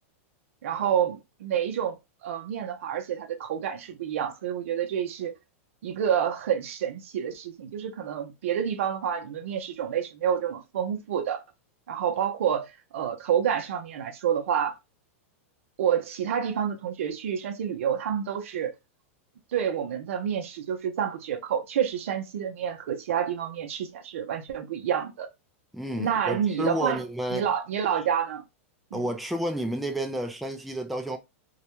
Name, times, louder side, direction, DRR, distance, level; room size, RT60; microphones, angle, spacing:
voice 1, 0.6-5.3 5.8-11.4 11.9-14.8 15.8-18.7 19.5-25.3 26.0-27.0 27.3-28.4 28.9-29.1, right 8 dB, 75° right, 0.5 m, -28 dB
voice 2, 25.7-27.5 28.9-31.2, equal, ahead, 0.3 m, -30 dB
2.3 x 2.1 x 2.8 m
hypercardioid pair, 130°, 7 cm